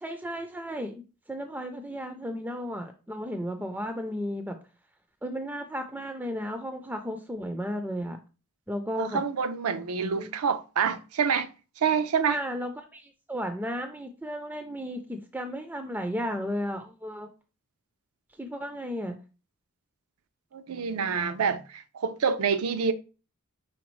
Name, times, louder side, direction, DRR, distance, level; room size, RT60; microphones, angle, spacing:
voice 1, 0.0-4.6 5.2-8.2 8.7-9.2 10.1-10.3 12.3-17.3 18.4-19.2, equal, 10° right, 0.3 m, -34 dB
voice 2, 9.0-11.5 11.8-12.4 20.5-22.9, right 6 dB, 80° right, 0.5 m, -27 dB
5.1 x 3.4 x 3.0 m
head